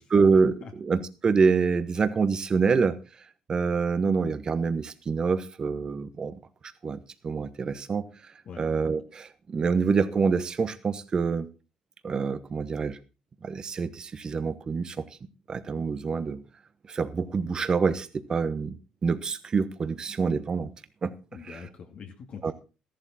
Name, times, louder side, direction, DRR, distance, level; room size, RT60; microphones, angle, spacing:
voice 1, 0.1-3.0 3.5-6.4 6.8-8.0 8.6-11.5 12.0-13.0 13.4-15.0 15.5-16.4 16.9-18.8 19.0-20.7 21.0-21.1 21.4-21.6 22.4-22.5, right 5 dB, 35° right, 12 dB, 1.2 m, -26 dB
voice 2, 21.3-22.5, left 6 dB, 55° left, 3 dB, 2.2 m, -43 dB
13.5 x 11.5 x 4.3 m, 0.31 s
cardioid pair, 105°, 2 cm